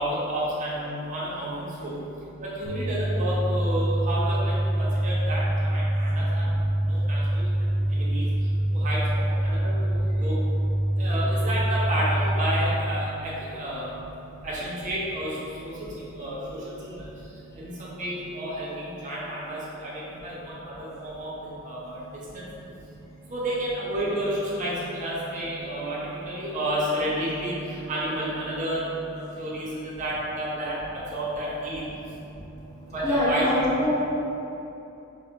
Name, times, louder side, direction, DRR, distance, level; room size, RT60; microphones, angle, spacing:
voice 1, 0.0-1.5 1.8-1.9 2.6-6.4 6.9-7.4 8.0-8.2 8.8-9.2 9.5-9.6 9.9-10.0 10.2-10.4 11.0-13.9 14.4-15.3 15.6-15.7 16.2-16.4 16.7-16.8 17.6-17.7 18.0-19.9 20.2-20.5 20.8-21.3 21.6-21.9 23.3-24.3 24.6-26.0 26.3-27.5 27.9-28.8 29.4-29.7 30.0-30.7 31.1-31.8 32.9-33.4, right 1 dB, 40° right, -7 dB, 0.6 m, -30 dB
sound 1, 2.7-12.7, right 1 dB, 90° right, 0.4 m, -25 dB
voice 2, 33.0-33.9, left 1 dB, 15° left, -10 dB, 0.8 m, -24 dB
4.6 x 2.3 x 2.7 m, 2.9 s
head